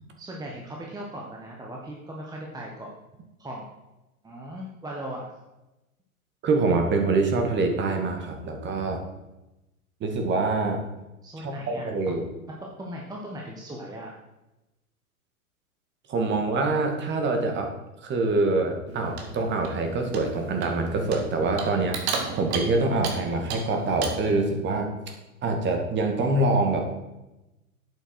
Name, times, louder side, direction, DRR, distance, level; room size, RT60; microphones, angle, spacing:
voice 1, 0.2-3.0 3.4-3.7 4.2-5.3 11.2-14.2, right 1 dB, 10° right, -1 dB, 1.4 m, -38 dB
voice 2, 6.4-9.0 10.0-10.8 11.4-12.2 16.1-17.7 18.0-22.0 22.3-24.9 25.4-26.8, right 3 dB, 25° right, 4 dB, 2.1 m, -25 dB
Clock, 18.9-24.3, right 5 dB, 45° right, 2.3 m, -35 dB
11.0 x 8.7 x 4.7 m, 0.98 s
figure-of-eight pair, 100°, 44 cm